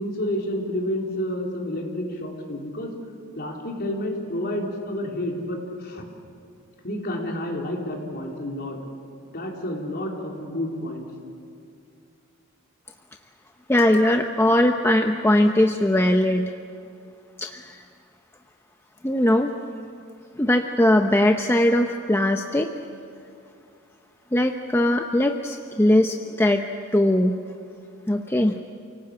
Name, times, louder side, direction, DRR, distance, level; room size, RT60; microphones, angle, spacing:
voice 1, 0.0-2.9 3.4-6.0 6.8-8.8 9.3-11.0, left 1 dB, 50° left, 0 dB, 3.9 m, -30 dB
voice 2, 13.7-16.5 17.4-17.8 19.0-19.5 20.4-22.7 24.3-26.6 26.9-27.4 28.1-28.6, left 1 dB, 10° left, 4 dB, 0.8 m, -20 dB
29.0 x 18.5 x 8.6 m, 2.4 s
head